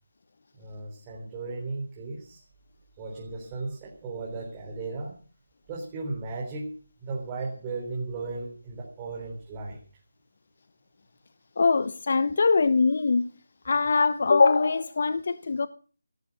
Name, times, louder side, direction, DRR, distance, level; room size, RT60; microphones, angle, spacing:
voice 1, 0.6-2.4 3.0-5.1 5.7-6.7 7.0-9.8, right 3 dB, 20° right, 4.1 m, -35 dB
voice 2, 11.6-13.3 13.6-15.7, left 4 dB, 50° left, 0.9 m, -22 dB
17.5 x 13.5 x 6.1 m
figure-of-eight pair, 160°, 0 cm